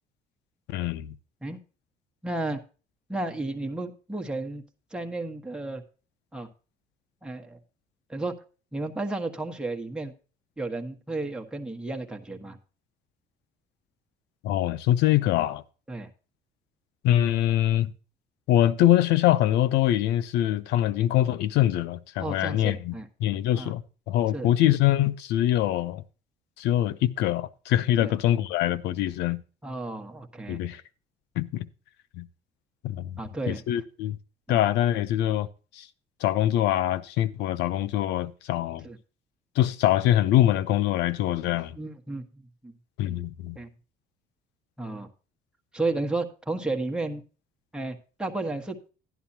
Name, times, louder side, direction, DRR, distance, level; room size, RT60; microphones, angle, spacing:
voice 1, 0.7-1.1 14.4-15.6 17.0-17.9 18.5-22.9 23.2-23.8 24.1-26.0 26.6-29.4 30.5-30.8 31.4-31.7 32.1-32.3 32.8-33.2 33.5-34.2 34.5-35.5 35.7-35.9 36.2-38.9 39.6-41.8 43.0-43.6, left 13 dB, 90° left, 0.7 m, -24 dB
voice 2, 2.2-2.6 3.1-4.6 4.9-5.8 6.3-6.5 7.2-7.6 8.1-8.3 8.7-10.1 10.6-12.6 15.9-16.1 22.2-23.1 23.5-23.7 24.3-24.5 28.0-28.1 29.6-30.6 33.2-33.6 34.5-34.6 38.8-39.0 41.7-42.7 43.5-43.7 44.8-45.1 45.7-47.2 47.7-48.8, right 2 dB, 5° right, 1.4 m, -33 dB
11.0 x 11.0 x 2.8 m
cardioid pair, 110°, 17 cm